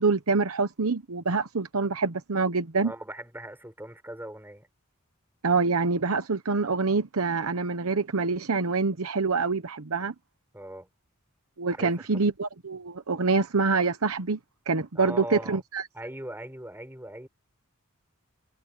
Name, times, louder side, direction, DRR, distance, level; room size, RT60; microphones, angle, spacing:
voice 1, 0.0-2.9 5.4-10.1 11.6-14.4 14.7-15.8, right 4 dB, 80° right, 1.0 m, -26 dB
voice 2, 2.8-4.7 10.5-10.9 11.7-12.2 15.0-15.6 15.9-17.3, right 1 dB, 10° right, 6.9 m, -40 dB
head